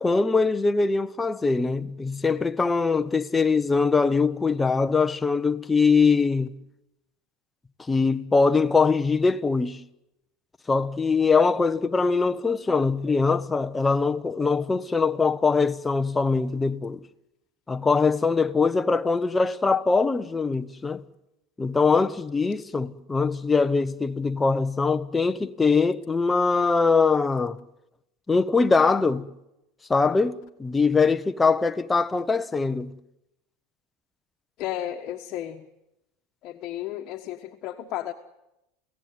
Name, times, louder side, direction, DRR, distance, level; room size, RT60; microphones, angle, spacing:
voice 1, 0.0-6.5 7.9-9.8 10.7-17.0 17.7-21.0 21.6-27.6 28.3-29.3 29.9-32.9, left 4 dB, 15° left, 1.0 m, -22 dB
voice 2, 34.6-35.7 36.4-38.1, left 12 dB, 50° left, 1.4 m, -33 dB
29.0 x 16.5 x 9.4 m
supercardioid pair, 125°, 0 cm